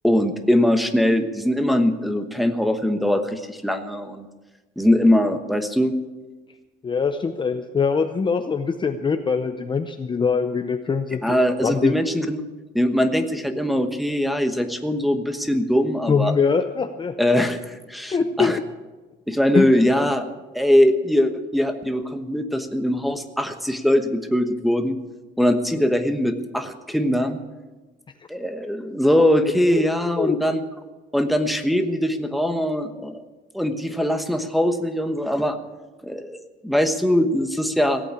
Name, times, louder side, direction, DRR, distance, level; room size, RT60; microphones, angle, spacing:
voice 1, 0.0-4.3 4.8-5.9 11.2-12.4 12.7-16.3 17.2-18.6 19.3-20.2 20.5-25.0 25.4-27.4 28.3-30.6 31.1-33.2 33.5-35.6 36.0-38.0, left 1 dB, ahead, 6 dB, 1.1 m, -21 dB
voice 2, 6.8-11.4 11.6-11.9 16.1-17.1 18.1-18.6 19.5-19.7 29.8-29.9 30.2-30.4, left 5 dB, 25° left, 7 dB, 0.6 m, -23 dB
17.0 x 8.6 x 8.5 m, 1.2 s
cardioid pair, 145°, 19 cm